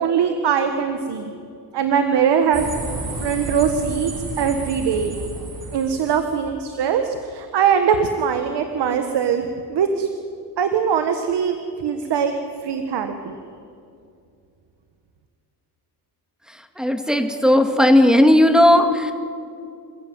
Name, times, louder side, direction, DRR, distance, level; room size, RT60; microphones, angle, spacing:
voice 1, 0.0-1.3 1.7-2.7 3.2-4.1 4.4-5.2 5.7-10.1 10.6-12.3 12.6-13.4, right 7 dB, 85° right, 7 dB, 1.5 m, -21 dB
sound 1, 2.5-6.4, right 2 dB, 60° right, 4.9 m, -31 dB
voice 2, 16.8-19.1, left 1 dB, ahead, 6 dB, 2.0 m, -15 dB
27.0 x 15.0 x 9.4 m, 2.4 s
cardioid pair, 105°, 40 cm